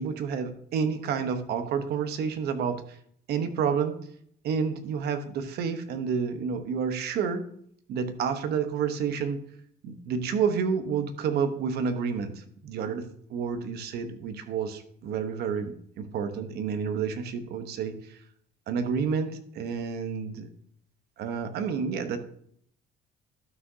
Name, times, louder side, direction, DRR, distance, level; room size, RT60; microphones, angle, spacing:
voice 1, 0.0-2.8 3.3-4.0 4.4-7.4 7.9-9.4 9.8-12.3 12.6-13.0 13.3-18.0 18.7-20.5 21.2-22.2, right 6 dB, 70° right, 9 dB, 1.0 m, -29 dB
12.5 x 6.1 x 2.7 m, 0.66 s
cardioid pair, 110°, 17 cm